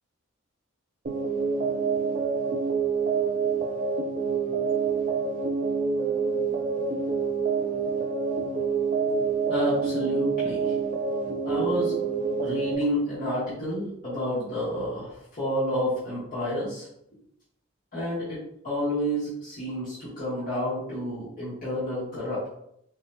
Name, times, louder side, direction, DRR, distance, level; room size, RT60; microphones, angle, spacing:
sound 1, 1.1-12.8, right 5 dB, 40° right, 0.4 m, -27 dB
voice 1, 9.5-10.7 11.4-11.9 12.4-16.9 17.9-18.4 18.6-22.5, equal, 45° left, -11 dB, 1.3 m, -29 dB
4.1 x 2.8 x 2.2 m, 0.74 s
head